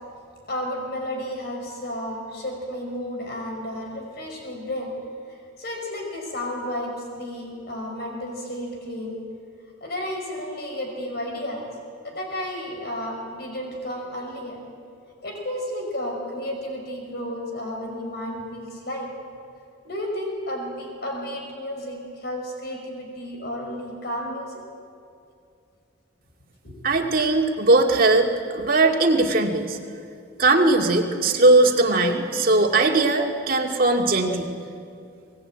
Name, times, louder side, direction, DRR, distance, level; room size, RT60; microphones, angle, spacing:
voice 1, 0.5-4.9 5.3-9.2 9.8-11.7 12.0-14.6 15.2-19.1 19.8-24.6 26.6-27.3, left 1 dB, 55° left, 1 dB, 5.3 m, -32 dB
voice 2, 26.8-29.8 30.4-34.5, right 2 dB, 45° right, 2 dB, 2.2 m, -19 dB
24.0 x 20.0 x 9.0 m, 2.4 s
head